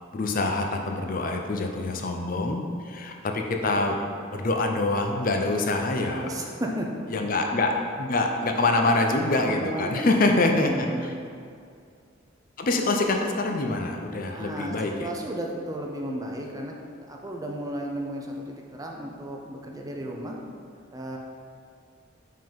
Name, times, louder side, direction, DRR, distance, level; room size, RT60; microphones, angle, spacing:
voice 1, 0.1-4.0 4.3-6.3 7.1-7.7 8.0-10.9 12.6-15.1, left 2 dB, 45° left, 3 dB, 0.5 m, -25 dB
voice 2, 6.0-6.9 7.2-7.3 9.3-10.3 10.6-11.1 14.3-16.8 17.1-20.4 20.9-21.2, right 1 dB, 15° right, 0 dB, 0.5 m, -34 dB
5.5 x 3.7 x 5.2 m, 2.3 s
head